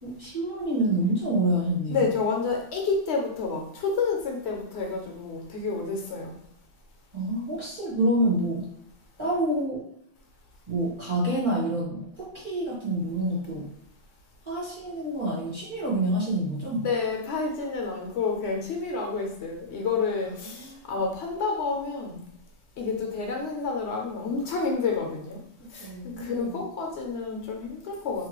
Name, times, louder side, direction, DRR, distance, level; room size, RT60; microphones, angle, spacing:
voice 1, 0.0-2.1 7.1-8.7 9.2-9.9 10.7-13.7 14.4-16.9 20.2-21.1 25.6-26.8, right 1 dB, 30° right, -6 dB, 0.7 m, -28 dB
voice 2, 1.9-6.4 16.8-22.2 22.8-25.4 25.7-28.3, left 4 dB, 70° left, 1 dB, 0.8 m, -29 dB
2.9 x 2.2 x 2.9 m, 0.74 s
omnidirectional pair, 1.2 m